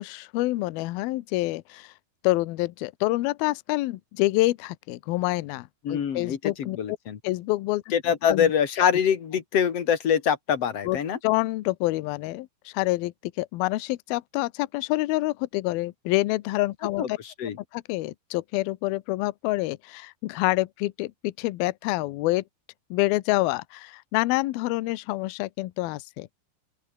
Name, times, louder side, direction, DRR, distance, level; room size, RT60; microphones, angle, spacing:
voice 1, 0.0-1.9 2.2-7.0 7.2-7.8 8.3-8.5 10.8-17.2 17.7-22.4 22.9-26.3, left 19 dB, 75° left, 2.3 m, -27 dB
voice 2, 5.8-7.2 7.9-11.2 17.0-17.6, left 8 dB, 45° left, 2.2 m, -24 dB
open air
omnidirectional pair, 5.2 m